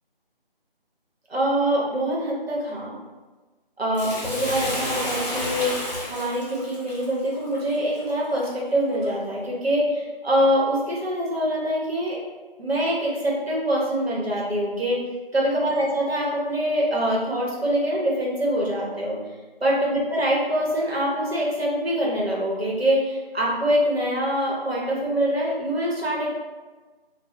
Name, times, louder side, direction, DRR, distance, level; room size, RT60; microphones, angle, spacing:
voice 1, 1.3-2.9 3.8-12.2 12.6-15.0 15.3-19.2 19.6-26.3, equal, 90° right, -4 dB, 1.1 m, -24 dB
Bathtub (filling or washing), 3.9-8.5 9.0-9.1, left 1 dB, 45° left, 0.8 m, -31 dB
2.3 x 2.2 x 3.2 m, 1.3 s
figure-of-eight pair, 170°, 30 cm